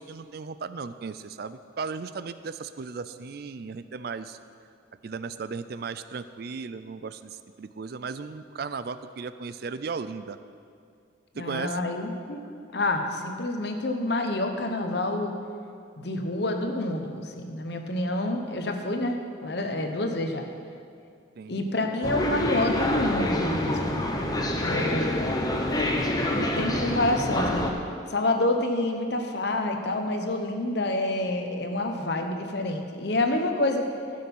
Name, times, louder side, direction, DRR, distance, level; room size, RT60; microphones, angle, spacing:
voice 1, 0.0-4.4 5.0-10.4 11.4-11.8 21.4-21.6, right 5 dB, 50° right, 12 dB, 0.4 m, -36 dB
voice 2, 11.3-12.4 12.7-15.3 16.0-20.5 21.5-24.1 24.4-25.4 26.3-27.6 28.1-33.9, left 2 dB, 55° left, 4 dB, 1.0 m, -28 dB
sound 1, 22.0-27.7, left 1 dB, 20° left, 0.8 m, -27 dB
15.0 x 6.5 x 5.5 m, 2.3 s
head